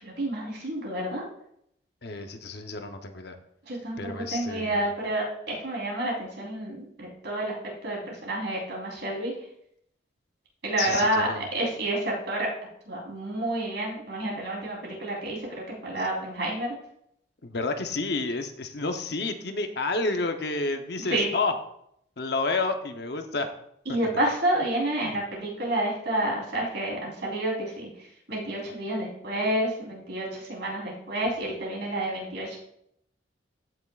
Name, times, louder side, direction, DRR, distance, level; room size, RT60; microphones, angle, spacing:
voice 1, 0.0-1.2 3.7-7.5 7.8-9.3 10.6-12.5 12.9-16.8 21.0-21.3 23.9-27.9 28.3-32.6, right 1 dB, 65° right, -2 dB, 3.6 m, -29 dB
voice 2, 2.0-3.4 4.0-4.9 10.8-11.5 17.4-21.5 22.2-23.5 25.0-25.1, left 3 dB, 55° left, 6 dB, 0.8 m, -30 dB
14.5 x 6.1 x 2.4 m, 0.73 s
head